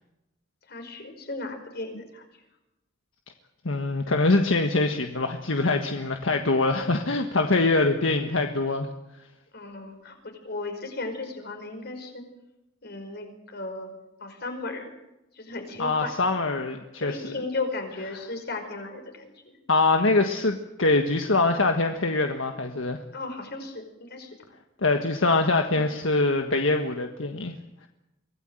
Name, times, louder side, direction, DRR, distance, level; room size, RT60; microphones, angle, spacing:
voice 1, 0.7-2.3 9.5-12.2 12.8-13.3 13.5-13.9 14.2-14.9 15.3-16.1 17.0-19.6 23.1-24.3 25.7-25.9, left 3 dB, 55° left, 5 dB, 5.2 m, -35 dB
voice 2, 3.6-8.9 15.8-17.3 19.7-23.0 24.8-27.5, left 3 dB, 80° left, 5 dB, 1.5 m, -24 dB
24.0 x 17.0 x 9.1 m, 0.95 s
head